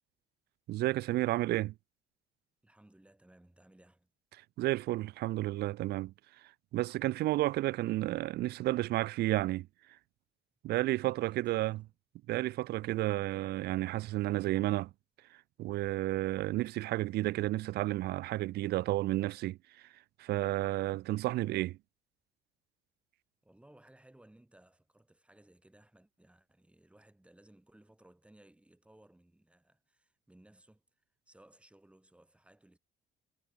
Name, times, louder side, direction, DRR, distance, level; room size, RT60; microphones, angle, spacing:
voice 1, 0.7-1.7 4.6-6.1 6.7-9.7 10.6-11.8 12.3-14.9 15.3-19.9 20.2-21.8, right 16 dB, 75° right, 0.8 m, -32 dB
voice 2, 2.6-4.1 11.2-11.8 23.4-32.8, right 1 dB, 5° right, 5.8 m, -61 dB
cardioid pair, 110°, 17 cm